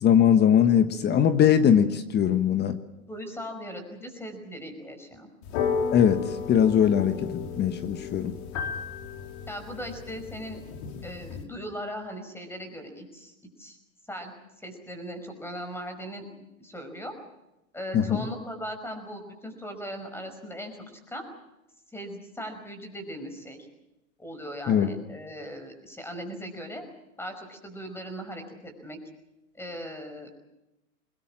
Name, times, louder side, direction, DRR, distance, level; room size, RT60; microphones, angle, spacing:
voice 1, 0.0-2.8 5.9-7.3 7.6-8.3 17.9-18.2 24.7-24.9, left 8 dB, 25° left, 10 dB, 1.4 m, -21 dB
voice 2, 3.1-5.3 9.5-10.6 11.0-13.8 14.1-16.3 16.6-17.1 17.7-20.8 21.1-21.2 21.9-23.7 24.2-26.9 27.2-29.0 29.5-30.4, equal, 5° left, 7 dB, 5.3 m, -39 dB
sound 1, 5.4-11.4, left 6 dB, 50° left, 3.7 m, -33 dB
23.5 x 20.5 x 7.4 m, 0.95 s
hypercardioid pair, 115°, 42 cm